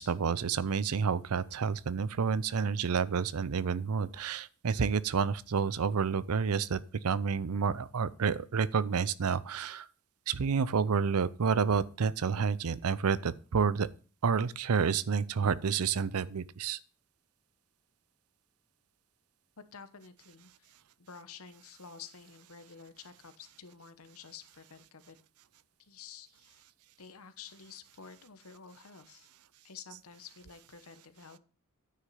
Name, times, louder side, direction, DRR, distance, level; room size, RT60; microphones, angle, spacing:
voice 1, 0.0-9.9 10.3-13.9 14.2-16.8, right 6 dB, 75° right, 0.5 m, -29 dB
voice 2, 19.6-20.7 21.0-25.2 25.8-26.6 27.0-29.3 29.6-31.4, left 6 dB, 70° left, 1.1 m, -50 dB
9.6 x 6.1 x 5.7 m
head